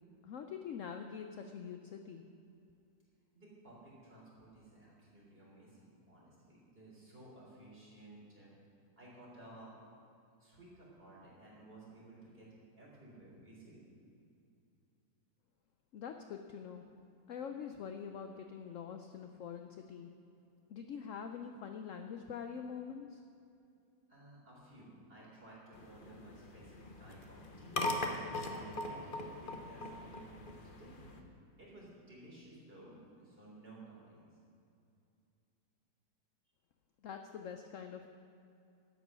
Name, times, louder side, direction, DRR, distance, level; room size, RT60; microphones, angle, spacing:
voice 1, 0.2-2.2 15.9-16.8 17.3-20.1 20.7-23.2 37.0-38.1, left 7 dB, 70° left, 6 dB, 0.7 m, -45 dB
voice 2, 3.3-8.5 9.0-9.7 10.4-12.5 12.8-13.8 24.1-27.8 28.5-31.2 31.6-34.3, right 2 dB, 30° right, -5 dB, 4.0 m, -56 dB
sound 1, 25.7-31.2, left 2 dB, 35° left, 0.9 m, -41 dB
12.0 x 9.2 x 6.2 m, 2.6 s
omnidirectional pair, 1.9 m